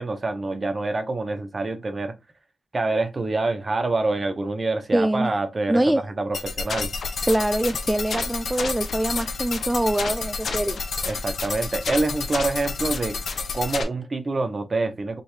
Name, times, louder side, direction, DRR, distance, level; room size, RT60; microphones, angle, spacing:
voice 1, 0.0-2.1 2.7-6.9 11.1-13.2 13.5-15.2, right 2 dB, 35° right, 0.8 m, -26 dB
voice 2, 4.9-5.3 5.7-6.0 7.3-10.8, right 1 dB, 10° right, 0.3 m, -23 dB
sound 1, 6.3-13.8, left 4 dB, 75° left, 1.0 m, -29 dB
5.3 x 3.2 x 3.2 m
wide cardioid pair, 95°, 0 cm